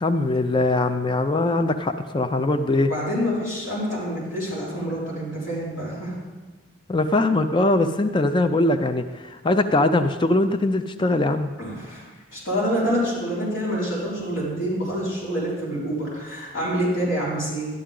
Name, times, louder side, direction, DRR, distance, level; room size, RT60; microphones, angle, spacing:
voice 1, 0.0-2.9 6.9-11.5, left 2 dB, 20° left, 9 dB, 0.4 m, -21 dB
voice 2, 2.8-6.1 11.6-17.7, equal, 60° left, -8 dB, 4.5 m, -27 dB
12.5 x 11.5 x 3.8 m, 1.3 s
head